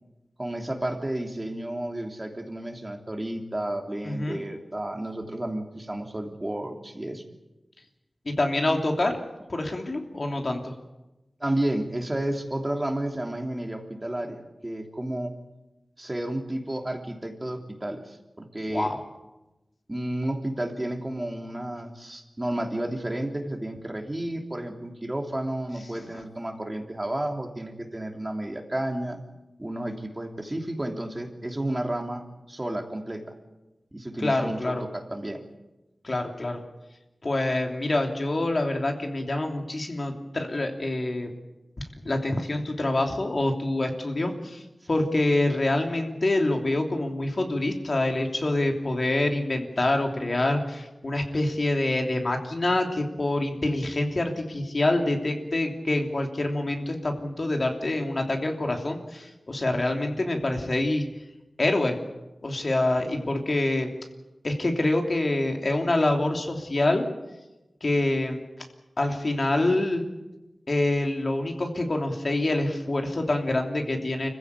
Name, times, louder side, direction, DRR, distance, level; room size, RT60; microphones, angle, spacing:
voice 1, 0.4-7.2 11.4-15.3 16.0-18.9 19.9-29.2 29.6-33.3 33.9-35.5 63.1-63.3, right 1 dB, 25° right, 3 dB, 3.1 m, -32 dB
voice 2, 4.0-4.4 8.2-9.2 9.5-10.7 18.7-19.0 25.9-26.2 34.2-34.8 36.0-36.6 37.2-41.3 42.0-44.6 44.9-61.0 61.6-61.9 62.4-63.9 64.4-67.1 67.8-68.4 69.0-70.0 70.7-74.3, left 2 dB, 55° left, 3 dB, 3.1 m, -26 dB
25.5 x 15.5 x 8.4 m, 1.0 s
wide cardioid pair, 60°, 0 cm